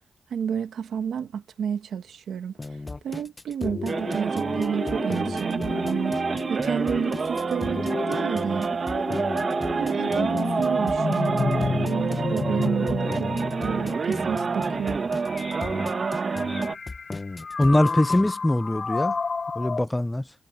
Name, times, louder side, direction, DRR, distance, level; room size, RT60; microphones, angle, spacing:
voice 1, 0.3-2.5 3.0-6.2 6.5-8.7 9.8-11.5 11.8-13.3 13.6-15.1, right 7 dB, 90° right, 1.5 m, -30 dB
sound 1, 2.6-18.3, left 3 dB, 35° left, 0.8 m, -36 dB
sound 2, 3.6-19.8, left 4 dB, 55° left, 3.4 m, -32 dB
sound 3, 3.9-16.7, right 5 dB, 55° right, 1.6 m, -28 dB
voice 2, 17.6-19.2 19.6-20.3, left 1 dB, 15° left, 0.4 m, -22 dB
cardioid pair, 60°, 0 cm